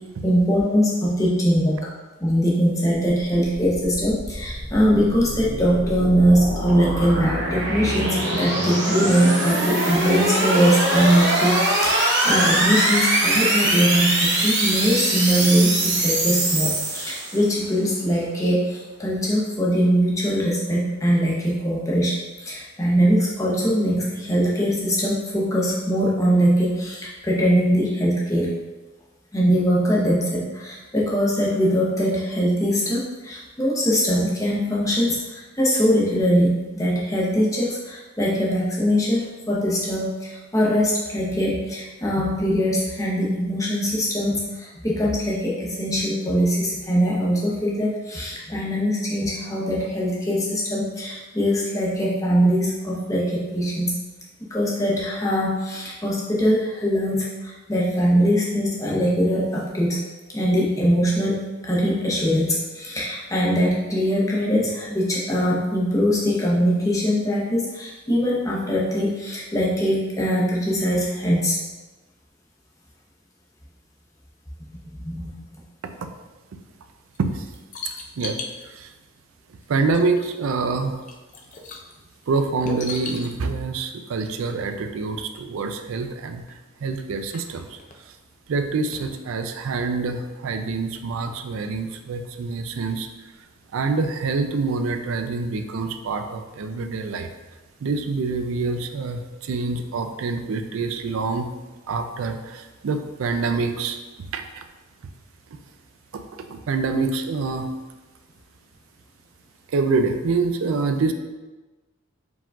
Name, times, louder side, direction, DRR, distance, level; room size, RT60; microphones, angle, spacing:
voice 1, 0.2-1.9 2.2-28.5 29.3-53.9 54.5-60.0 60.3-71.6 74.8-75.4, equal, 15° left, -5 dB, 0.7 m, -22 dB
sound 1, 3.6-17.6, right 1 dB, 55° right, 1.1 m, -23 dB
sound 2, 77.1-78.6 79.6-79.7 79.9-80.5 80.8-81.9 82.6-83.3 85.3-85.4 85.7-85.8 86.4-86.5 87.0-88.0 88.9-89.1 89.4-89.5, left 3 dB, 35° left, 0.4 m, -36 dB
voice 2, 78.2-78.9 79.7-81.0 82.3-87.8 88.5-93.1 93.7-97.3 97.8-101.5 101.9-104.0 104.3-104.6 106.1-106.2 106.5-107.7 109.7-111.1, right 4 dB, 75° right, 7 dB, 0.4 m, -26 dB
4.8 x 3.7 x 2.3 m, 1.2 s
head